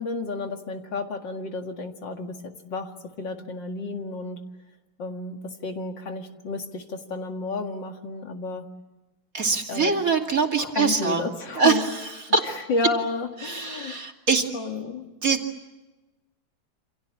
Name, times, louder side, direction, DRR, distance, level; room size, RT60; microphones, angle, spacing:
voice 1, 0.0-2.9 3.2-4.4 5.0-8.7 9.7-9.9 10.6-11.9 12.4-14.0 14.5-15.0, left 3 dB, 65° left, 4 dB, 2.7 m, -31 dB
voice 2, 9.3-11.2 11.6-12.6 13.4-14.4 15.2-15.4, right 4 dB, 45° right, 3 dB, 2.9 m, -23 dB
28.5 x 26.5 x 7.4 m, 1.1 s
omnidirectional pair, 2.1 m